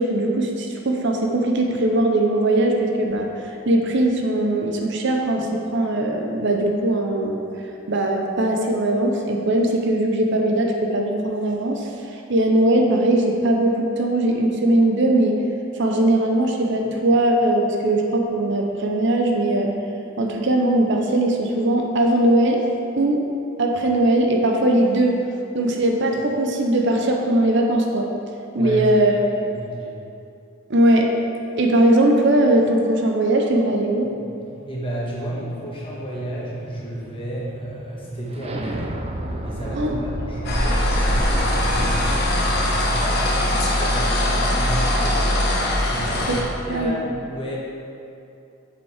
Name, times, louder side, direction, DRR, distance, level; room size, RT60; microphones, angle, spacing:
voice 1, 0.0-3.3 3.7-7.4 7.9-11.9 12.3-15.4 15.8-19.7 20.2-22.6 23.0-23.3 23.6-25.2 25.5-28.1 28.5-29.1 30.7-31.2 31.6-34.1 39.8-40.0 46.3-46.4 46.7-46.9, right 1 dB, 60° right, 2 dB, 0.7 m, -20 dB
voice 2, 28.6-30.0 34.7-39.0 39.4-45.5 45.8-46.4 46.7-47.6, right 1 dB, 25° left, -6 dB, 1.5 m, -32 dB
sound 1, 33.7-43.9, right 1 dB, 30° right, 0.5 m, -34 dB
sound 2, 40.4-46.4, left 1 dB, 50° left, 1.2 m, -21 dB
7.2 x 5.9 x 4.9 m, 2.7 s
head